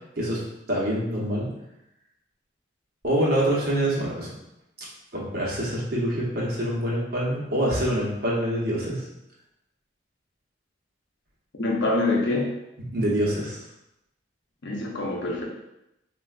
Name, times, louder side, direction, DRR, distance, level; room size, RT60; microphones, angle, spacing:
voice 1, 0.7-1.5 3.0-4.3 5.1-9.0 12.9-13.6, right 1 dB, 55° right, -5 dB, 0.9 m, -25 dB
voice 2, 11.6-12.5 14.6-15.4, left 2 dB, 75° left, -1 dB, 0.6 m, -25 dB
3.3 x 2.4 x 2.4 m, 0.87 s
head